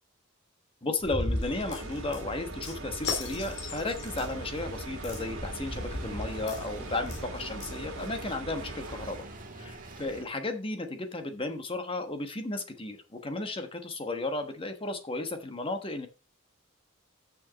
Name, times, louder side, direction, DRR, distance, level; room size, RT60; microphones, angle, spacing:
voice 1, 0.8-9.3 9.6-16.1, left 2 dB, 25° left, 7 dB, 1.2 m, -34 dB
sound 1, 1.0-8.2, left 2 dB, 55° left, 2.5 m, -38 dB
sound 2, 1.2-9.3, right 2 dB, 75° right, 1.6 m, -41 dB
sound 3, 4.0-10.2, right 2 dB, 40° right, 1.8 m, -46 dB
6.5 x 6.0 x 7.3 m, 0.32 s
head